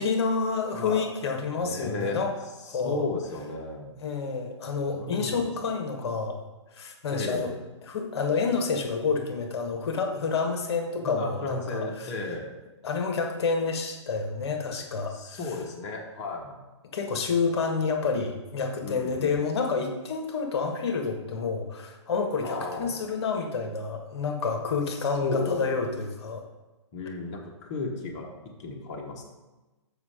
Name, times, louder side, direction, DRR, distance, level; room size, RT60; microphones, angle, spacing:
voice 1, 0.0-2.4 2.6-3.0 4.0-6.4 6.7-7.5 7.8-12.1 12.8-15.6 16.9-26.4, left 4 dB, 55° left, 3 dB, 1.2 m, -29 dB
voice 2, 1.6-2.2 2.6-4.0 4.9-5.5 7.1-7.6 11.0-12.5 15.1-16.6 18.8-19.4 22.4-22.9 25.2-25.7 26.9-28.3 28.6-29.2, left 3 dB, 30° left, -1 dB, 1.2 m, -34 dB
7.2 x 5.4 x 5.0 m, 1.1 s
hypercardioid pair, 145°, 16 cm